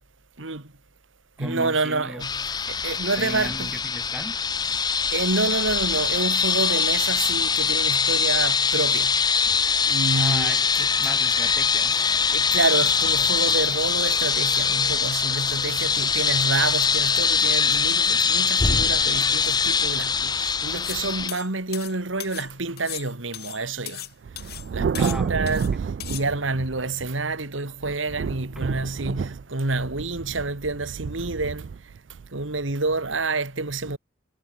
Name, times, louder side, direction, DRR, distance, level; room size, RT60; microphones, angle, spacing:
voice 1, 0.4-0.7 1.4-3.7 4.8-9.2 9.9-10.9 11.9-24.1 24.7-31.7 32.3-34.0, right 3 dB, 90° right, 2.3 m, -28 dB
voice 2, 1.4-2.2 3.1-4.4 10.1-10.6 11.0-12.0 24.9-25.6 28.5-28.7, equal, 5° right, 1.3 m, -36 dB
sound 1, 2.2-21.3, left 6 dB, 20° left, 0.8 m, -23 dB
sound 2, 20.8-21.0 21.3-22.5 22.8-24.1 24.4-24.7 25.0-25.7 26.0-26.3, left 15 dB, 50° left, 1.0 m, -37 dB
Thunder, 24.2-27.3 27.8-33.1, right 6 dB, 60° right, 0.3 m, -30 dB
head